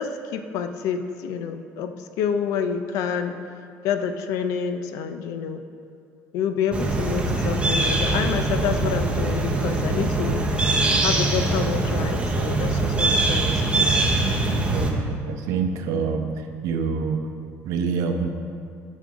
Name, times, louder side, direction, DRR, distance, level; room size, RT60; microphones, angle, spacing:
voice 1, 0.0-3.4 3.8-5.6 6.3-10.4 11.0-13.9, left 7 dB, 75° left, 8 dB, 0.5 m, -28 dB
sound 1, 6.7-14.9, right 2 dB, 15° right, 0.7 m, -22 dB
voice 2, 14.7-17.3 17.6-18.3, right 5 dB, 75° right, 5 dB, 0.7 m, -26 dB
9.6 x 5.4 x 3.7 m, 2.4 s
cardioid pair, 140°, 6 cm